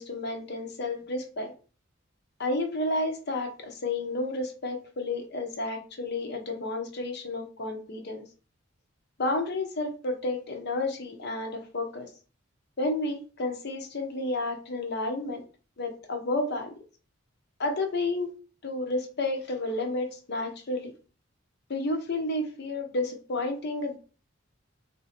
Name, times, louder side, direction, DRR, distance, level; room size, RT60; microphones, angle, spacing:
voice 1, 0.0-1.5 2.4-8.3 9.2-12.1 12.8-15.4 15.8-16.7 17.6-18.3 18.6-20.9 21.7-24.0, left 2 dB, 55° left, 4 dB, 0.7 m, -31 dB
2.6 x 2.5 x 4.1 m, 0.36 s
head